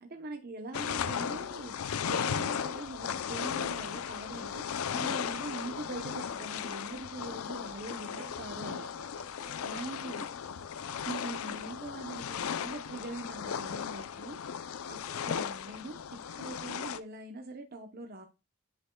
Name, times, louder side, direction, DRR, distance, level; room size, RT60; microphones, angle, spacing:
voice 1, 0.0-8.8 9.6-10.3 11.0-14.4 14.9-18.3, right 2 dB, 45° right, 4 dB, 0.8 m, -43 dB
sound 1, 0.7-17.0, left 7 dB, 80° left, 0.5 m, -36 dB
voice 2, 7.2-8.4 8.6-11.2 14.9-15.4, right 2 dB, 80° right, 6 dB, 1.6 m, -53 dB
10.0 x 5.4 x 2.2 m, 0.29 s
head